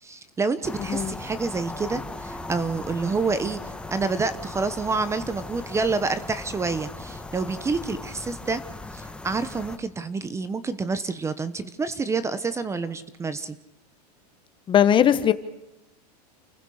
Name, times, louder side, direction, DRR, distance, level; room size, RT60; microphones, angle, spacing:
voice 1, 0.0-3.6 3.9-8.6 8.9-13.6, right 4 dB, 15° right, 13 dB, 1.1 m, -28 dB
sound 1, 0.6-9.8, left 2 dB, 5° left, 1.4 m, -38 dB
voice 2, 0.8-1.2 14.7-15.3, left 9 dB, 25° left, 12 dB, 1.3 m, -19 dB
29.5 x 15.5 x 6.5 m, 0.90 s
supercardioid pair, 140°, 20 cm